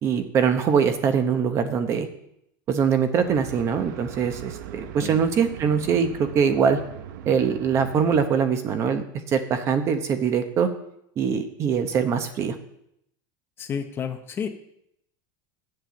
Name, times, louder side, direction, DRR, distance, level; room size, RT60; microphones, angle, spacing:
voice 1, 0.0-2.1 2.7-6.8 7.3-10.7 11.2-12.6, right 7 dB, 25° right, 8 dB, 0.9 m, -23 dB
sound 1, 3.2-8.3, right 10 dB, 75° right, 0.7 m, -39 dB
voice 2, 13.6-14.5, left 7 dB, 20° left, 7 dB, 0.7 m, -30 dB
8.9 x 7.7 x 6.8 m, 0.75 s
supercardioid pair, 165°, 10 cm